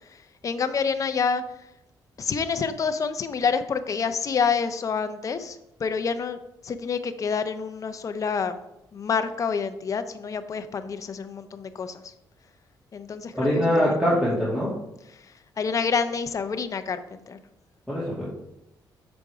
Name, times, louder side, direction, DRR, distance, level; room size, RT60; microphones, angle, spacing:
voice 1, 0.4-1.4 2.2-6.4 6.6-8.6 8.9-12.0 12.9-14.0 15.6-17.4, left 5 dB, 45° left, 10 dB, 0.6 m, -27 dB
voice 2, 13.3-14.7 17.9-18.3, equal, 5° right, -9 dB, 2.3 m, -23 dB
6.6 x 5.2 x 4.8 m, 0.85 s
cardioid pair, 105°, 8 cm